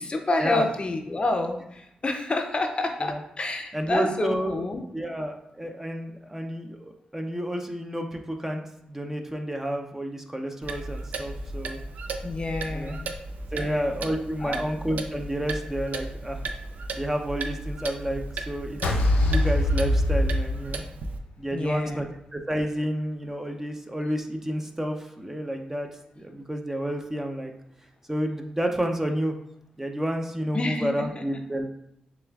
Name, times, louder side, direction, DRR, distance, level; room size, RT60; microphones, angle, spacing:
voice 1, 0.0-4.8 12.2-13.2 13.6-13.9 14.4-14.7 21.5-22.0 30.5-31.2, left 2 dB, 40° left, 4 dB, 0.5 m, -29 dB
voice 2, 3.7-4.6 4.9-8.6 8.9-11.8 12.7-13.0 13.5-16.4 16.9-20.8 21.4-22.1 22.3-25.9 26.2-27.5 28.1-29.3 29.8-31.6, equal, 15° right, 3 dB, 0.5 m, -30 dB
Clock, 10.6-21.2, right 2 dB, 70° right, 0.4 m, -35 dB
sound 1, 18.8-21.2, left 1 dB, 90° left, 0.5 m, -23 dB
6.6 x 2.3 x 2.3 m, 0.79 s
cardioid pair, 55°, 3 cm